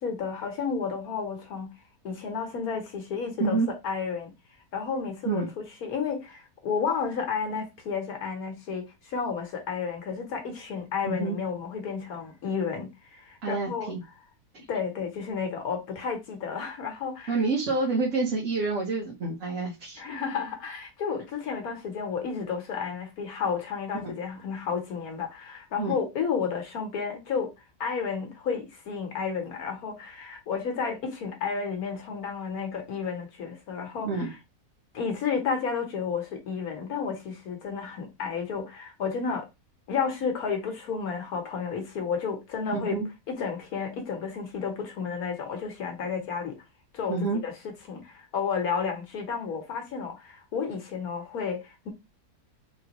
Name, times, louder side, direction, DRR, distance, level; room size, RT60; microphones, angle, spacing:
voice 1, 0.0-1.7 2.0-4.3 4.7-5.4 5.8-13.9 14.7-17.4 20.0-27.5 27.8-34.1 34.9-39.5 39.9-43.0 43.3-46.6 46.9-47.2 47.4-47.5 47.9-51.9, left 6 dB, 70° left, 1.4 m, -32 dB
voice 2, 11.0-11.4 13.4-14.0 17.3-20.0 24.0-24.2 25.8-26.0 34.0-34.3 42.7-43.1 47.1-47.4, right 3 dB, 55° right, 1.3 m, -28 dB
3.5 x 3.5 x 2.9 m
omnidirectional pair, 1.6 m